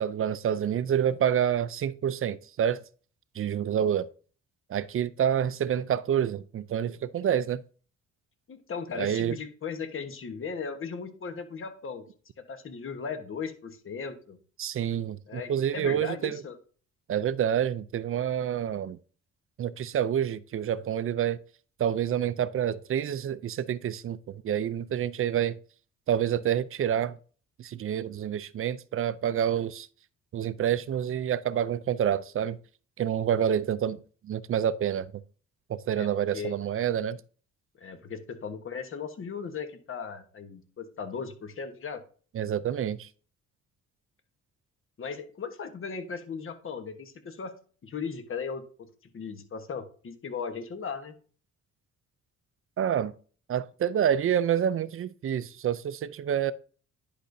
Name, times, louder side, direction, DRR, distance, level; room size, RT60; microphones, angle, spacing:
voice 1, 0.0-2.8 3.4-4.1 4.7-7.6 9.0-9.4 14.6-16.4 17.1-19.0 19.6-21.4 21.8-25.6 26.1-27.2 27.6-29.9 30.3-32.6 33.0-35.1 35.7-37.2 42.3-43.1 52.8-53.1 53.5-56.5, right 9 dB, 45° right, 0.5 m, -28 dB
voice 2, 8.5-12.0 12.5-14.4 15.3-16.6 35.9-36.5 37.8-42.0 45.0-47.5 47.8-48.6 49.1-51.1, left 5 dB, 45° left, 1.3 m, -37 dB
10.0 x 5.1 x 2.7 m
cardioid pair, 90°, 30 cm